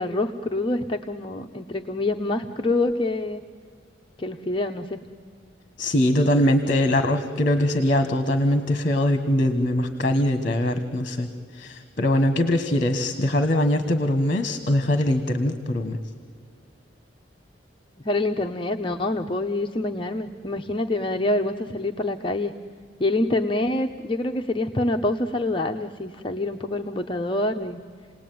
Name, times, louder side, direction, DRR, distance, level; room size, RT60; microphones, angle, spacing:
voice 1, 0.0-3.4 4.2-5.0 18.0-22.5 23.0-27.8, left 2 dB, 25° left, 3 dB, 0.8 m, -26 dB
voice 2, 5.8-11.3 11.5-16.0, left 1 dB, 45° left, 8 dB, 1.4 m, -22 dB
29.0 x 19.0 x 9.3 m, 2.2 s
head